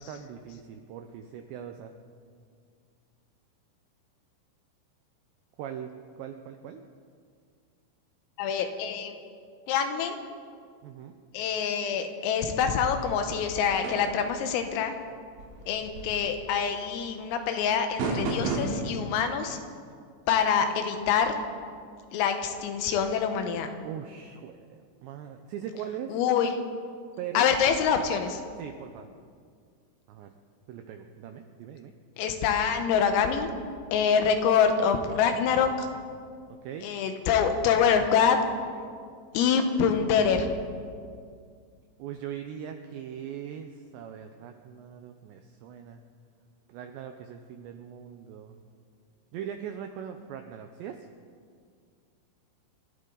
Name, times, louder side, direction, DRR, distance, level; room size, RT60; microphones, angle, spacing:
voice 1, 0.0-1.9 5.6-6.8 10.8-11.1 23.8-26.1 27.2-27.5 28.6-29.1 30.1-30.4 30.7-31.9 36.5-36.9 42.0-46.0 46.7-48.6 49.3-51.1, right 9 dB, 85° right, 6 dB, 2.5 m, -40 dB
voice 2, 8.4-9.1 9.7-10.2 11.3-15.0 15.7-19.6 20.3-21.4 22.1-23.7 26.1-26.6 27.4-28.4 32.2-33.5 33.9-35.9 36.8-38.4 39.3-40.5, left 7 dB, 85° left, 6 dB, 3.8 m, -25 dB
sound 1, 13.8-14.2 15.3-16.7 18.0-18.9, right 3 dB, 70° right, 4.4 m, -32 dB
27.0 x 13.5 x 4.0 m, 2.1 s
omnidirectional pair, 5.9 m